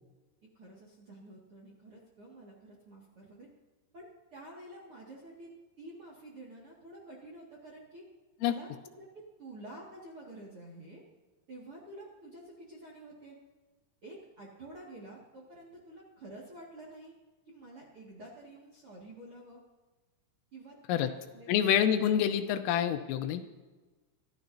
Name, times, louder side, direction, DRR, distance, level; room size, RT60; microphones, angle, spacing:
voice 1, 0.5-3.5 3.9-5.5 5.8-8.0 8.4-8.7 8.9-11.0 11.5-13.4 14.0-17.2 17.5-19.6 20.5-21.6 21.9-22.0, right 1 dB, 45° right, -4 dB, 1.8 m, -49 dB
voice 2, 21.5-23.4, left 9 dB, 90° left, 8 dB, 3.4 m, -27 dB
25.5 x 13.0 x 2.8 m, 1.2 s
omnidirectional pair, 5.9 m